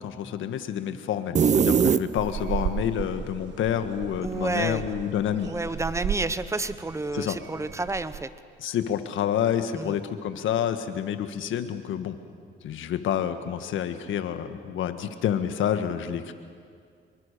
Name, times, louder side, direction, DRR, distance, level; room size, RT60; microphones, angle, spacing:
voice 1, 0.0-5.5 7.1-7.4 8.6-12.2 12.6-16.3, left 9 dB, 80° left, 9 dB, 1.6 m, -28 dB
sound 1, 1.4-2.6, right 7 dB, 35° right, 0.7 m, -21 dB
sound 2, 2.2-8.2, right 8 dB, 65° right, 0.9 m, -35 dB
voice 2, 4.2-4.8 5.5-8.3 9.7-10.0, right 2 dB, 15° right, 13 dB, 1.1 m, -30 dB
26.5 x 23.0 x 6.8 m, 2.2 s
cardioid pair, 90°, 20 cm